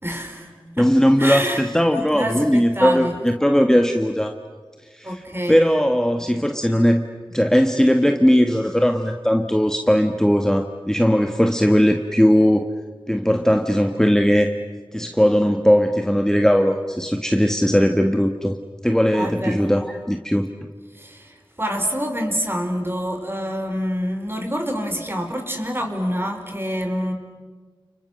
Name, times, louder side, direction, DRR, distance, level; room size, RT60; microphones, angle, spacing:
voice 1, 0.0-0.9 1.2-1.6 1.9-3.2 5.0-5.7 19.1-19.8 20.9-27.1, equal, 25° right, 4 dB, 4.6 m, -27 dB
voice 2, 0.8-3.1 3.4-4.3 4.9-5.2 5.5-7.0 7.3-12.7 13.1-14.5 14.9-18.6 18.8-20.5, equal, 5° left, 5 dB, 1.5 m, -18 dB
30.0 x 30.0 x 6.5 m, 1.4 s
wide cardioid pair, 55°, 9 cm